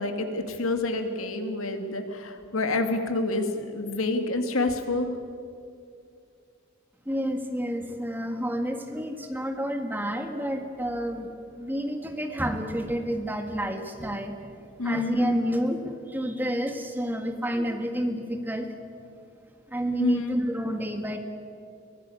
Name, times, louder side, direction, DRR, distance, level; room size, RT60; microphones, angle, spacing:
voice 1, 0.0-5.2 14.8-15.3 20.0-20.3, left 2 dB, 80° left, 7 dB, 2.2 m, -28 dB
voice 2, 7.1-18.7 19.7-21.2, equal, 10° right, 5 dB, 1.7 m, -30 dB
23.0 x 17.0 x 8.7 m, 2.4 s
head